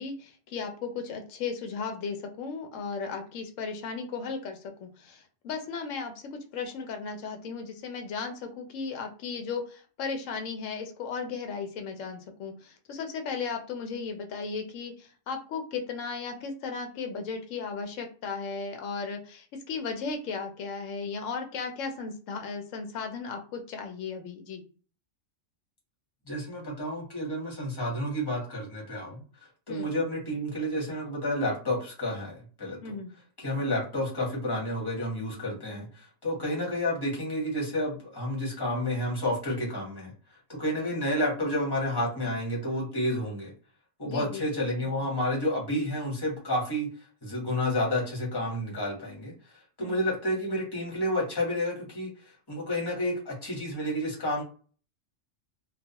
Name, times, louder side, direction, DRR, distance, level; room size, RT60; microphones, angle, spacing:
voice 1, 0.0-24.6 29.7-29.9 32.8-33.1 44.0-44.5 49.8-50.0, left 5 dB, 85° left, 5 dB, 0.9 m, -36 dB
voice 2, 26.3-29.2 29.7-32.9 33.4-40.1 40.5-43.5 44.0-46.9 47.2-49.3 49.8-54.4, left 1 dB, 20° left, -3 dB, 1.0 m, -30 dB
2.3 x 2.3 x 2.8 m, 0.39 s
omnidirectional pair, 1.3 m